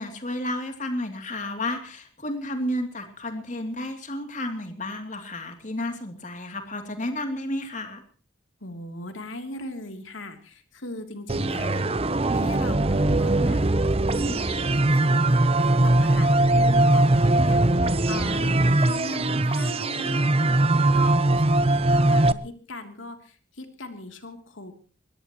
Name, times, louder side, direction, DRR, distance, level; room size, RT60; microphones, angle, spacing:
voice 1, 0.0-8.0, left 1 dB, 40° left, 6 dB, 2.9 m, -32 dB
voice 2, 8.6-11.9 12.3-13.7 14.1-20.7 20.9-24.7, left 2 dB, 90° left, 6 dB, 3.1 m, -39 dB
sound 1, 11.3-22.3, right 2 dB, 30° right, 0.8 m, -21 dB
23.0 x 20.0 x 3.1 m, 0.40 s
head